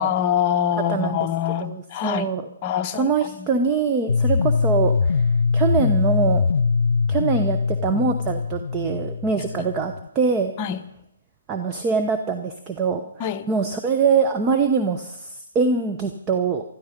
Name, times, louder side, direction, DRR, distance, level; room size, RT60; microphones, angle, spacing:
voice 1, 0.0-2.3 2.6-3.5 9.6-9.7 10.6-10.8 13.2-13.5, left 9 dB, 30° left, 6 dB, 0.9 m, -25 dB
voice 2, 0.9-1.3 1.6-2.4 2.9-5.3 5.5-6.5 7.1-10.5 11.5-13.0 13.5-16.6, right 5 dB, 20° right, 6 dB, 0.9 m, -23 dB
sound 1, 4.1-10.1, left 5 dB, 75° left, 0.5 m, -22 dB
16.0 x 13.0 x 5.2 m, 0.78 s
hypercardioid pair, 150°, 0 cm